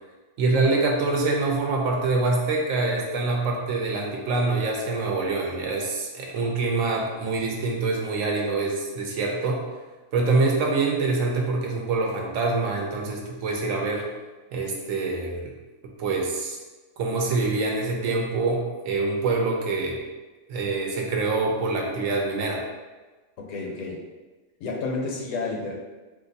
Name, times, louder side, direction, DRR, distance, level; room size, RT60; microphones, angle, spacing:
voice 1, 0.4-9.6 10.1-14.1 14.5-15.5 16.0-16.6 17.0-20.0 20.5-22.6, right 3 dB, 75° right, 0 dB, 1.0 m, -25 dB
voice 2, 23.4-24.0 24.6-25.7, left 3 dB, 75° left, -1 dB, 1.0 m, -30 dB
2.6 x 2.5 x 3.9 m, 1.2 s
omnidirectional pair, 1.4 m